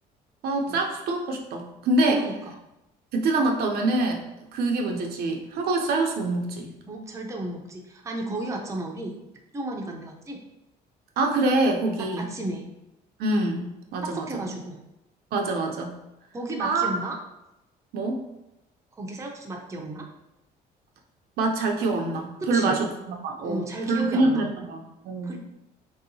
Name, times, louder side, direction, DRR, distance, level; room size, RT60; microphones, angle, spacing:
voice 1, 0.4-2.2 3.1-4.2 4.5-6.7 11.2-12.3 13.2-14.4 15.3-16.0 16.6-17.0 17.9-18.2 21.4-25.4, right 2 dB, 70° right, 2 dB, 0.5 m, -25 dB
voice 2, 6.9-9.2 9.5-10.4 12.0-12.6 14.0-14.8 16.3-17.2 19.0-20.1 22.4-22.8 23.4-24.5 25.2-25.4, right 1 dB, 15° right, 0 dB, 0.5 m, -33 dB
3.2 x 2.7 x 2.6 m, 0.92 s
cardioid pair, 110°, 17 cm